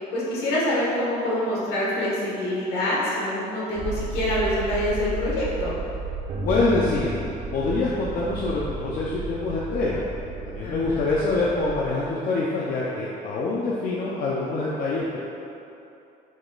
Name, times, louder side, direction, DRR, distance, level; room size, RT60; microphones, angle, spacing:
voice 1, 0.1-5.7 10.6-11.0, left 1 dB, 75° left, -6 dB, 1.3 m, -26 dB
sound 1, 3.8-11.8, right 3 dB, 60° right, 0.8 m, -33 dB
voice 2, 6.4-7.1 7.5-10.0 10.4-15.2, left 3 dB, 55° left, -5 dB, 0.5 m, -25 dB
5.0 x 2.3 x 3.8 m, 2.8 s
cardioid pair, 110°, 17 cm